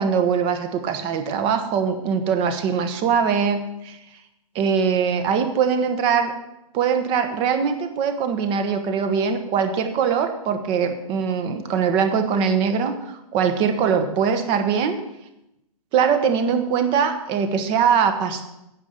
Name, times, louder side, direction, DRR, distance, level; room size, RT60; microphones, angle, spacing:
voice 1, 0.0-4.0 4.5-6.3 6.7-15.0 15.9-18.5, right 6 dB, 30° right, 7 dB, 1.2 m, -22 dB
9.7 x 7.4 x 6.7 m, 0.88 s
hypercardioid pair, 140°, 19 cm